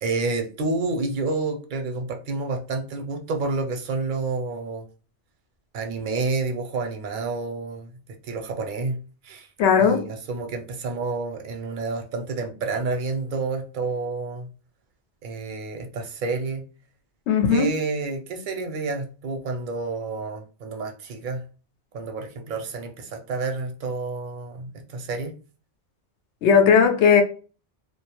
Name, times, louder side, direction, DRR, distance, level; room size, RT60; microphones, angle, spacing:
voice 1, 0.0-4.9 5.7-8.0 8.2-9.0 9.2-9.5 9.8-14.5 15.2-16.6 17.5-21.4 21.9-25.3, right 3 dB, 60° right, 0.6 m, -29 dB
voice 2, 9.6-10.1 17.3-17.7 26.4-27.2, left 6 dB, 85° left, 0.9 m, -17 dB
2.2 x 2.0 x 2.8 m
omnidirectional pair, 1.1 m